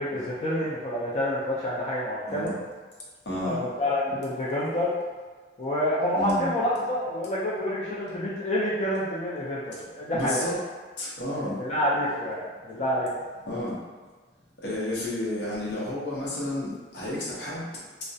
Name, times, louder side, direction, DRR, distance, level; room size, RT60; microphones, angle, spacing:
voice 1, 0.0-2.5 3.4-4.9 5.6-10.5 11.4-13.1, left 1 dB, 40° left, -8 dB, 0.4 m, -28 dB
voice 2, 3.3-3.6 6.2-6.5 10.1-10.6 11.0-11.6 13.4-13.8 14.6-17.7, left 1 dB, 75° left, -6 dB, 0.7 m, -31 dB
2.3 x 2.0 x 2.6 m, 1.4 s
head